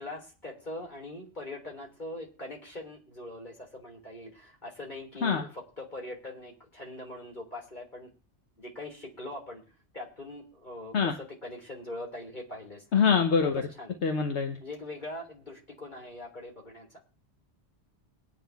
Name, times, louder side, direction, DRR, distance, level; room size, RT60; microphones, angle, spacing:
voice 1, 0.0-8.1 8.6-9.6 9.9-12.8 13.5-14.0 14.6-16.9, left 1 dB, 45° left, -1 dB, 3.5 m, -42 dB
voice 2, 12.9-13.6 14.0-14.6, left 6 dB, 80° left, 6 dB, 1.3 m, -24 dB
21.5 x 9.3 x 3.4 m, 0.36 s
omnidirectional pair, 1.1 m